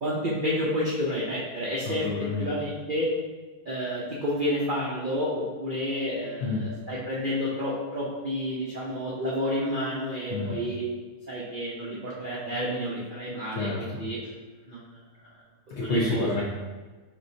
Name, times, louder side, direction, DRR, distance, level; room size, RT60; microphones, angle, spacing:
voice 1, 0.0-2.0 2.4-3.1 3.7-10.8 11.3-14.2 14.7-14.8 15.8-16.4, equal, 70° right, -7 dB, 0.4 m, -30 dB
voice 2, 1.8-2.6 6.4-6.7 10.3-10.6 13.5-14.1 15.7-16.4, left 2 dB, 55° left, -4 dB, 0.8 m, -29 dB
5.1 x 3.1 x 2.7 m, 1.3 s
omnidirectional pair, 1.9 m